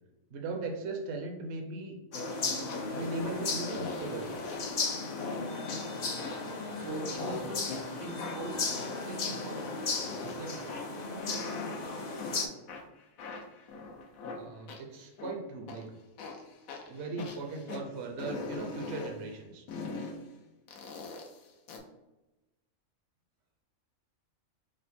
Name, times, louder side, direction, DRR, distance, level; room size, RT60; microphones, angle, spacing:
voice 1, 0.3-1.9 2.9-4.3 14.4-15.9 16.9-19.6, right 3 dB, 60° right, 2 dB, 0.8 m, -38 dB
sound 1, 2.1-12.5, left 3 dB, 65° left, 0.4 m, -35 dB
sound 2, 2.7-3.3 3.7-4.8 5.2-5.4 5.7-6.7 7.2-7.8 8.2-10.4 10.7-12.4 12.7-15.3 15.7-15.8 16.2-17.8 18.2-19.2 19.7-20.2 20.7-21.8, left 4 dB, 85° left, 1.2 m, -41 dB
voice 2, 6.7-7.6 8.0-8.6 9.1-9.7 10.2-10.7, right 2 dB, 90° right, -3 dB, 2.1 m, -41 dB
5.0 x 2.1 x 4.1 m, 1.1 s
omnidirectional pair, 1.4 m